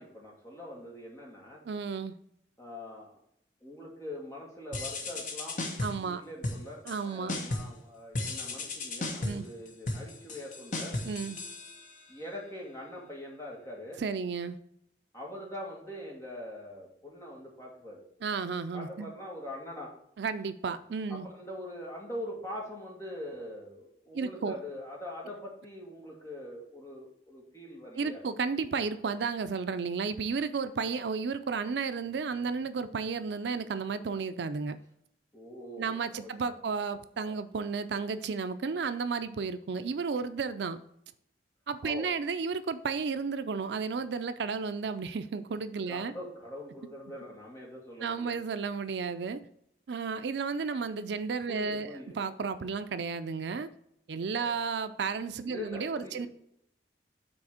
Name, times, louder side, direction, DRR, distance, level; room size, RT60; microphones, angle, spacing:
voice 1, 0.0-1.6 2.6-3.2 3.6-5.6 5.9-11.0 12.1-14.0 15.1-18.0 18.7-19.9 21.1-28.2 35.3-36.3 36.6-36.7 37.2-37.3 41.8-42.1 45.9-48.4 51.5-52.2 54.4-54.6 55.4-56.3, left 1 dB, 15° left, -2 dB, 2.0 m, -43 dB
voice 2, 1.7-2.1 5.8-6.2 6.9-7.4 9.2-9.5 11.0-11.4 14.0-14.6 18.2-19.1 20.2-21.3 24.1-24.6 28.0-34.8 35.8-40.8 41.7-46.1 48.0-49.4 49.9-53.7 54.1-56.3, right 5 dB, 70° right, 12 dB, 0.4 m, -33 dB
sound 1, 4.7-6.1 6.4-7.0 7.3-7.8 8.1-12.2, left 2 dB, 45° left, 1.1 m, -35 dB
6.1 x 4.2 x 6.3 m, 0.73 s
head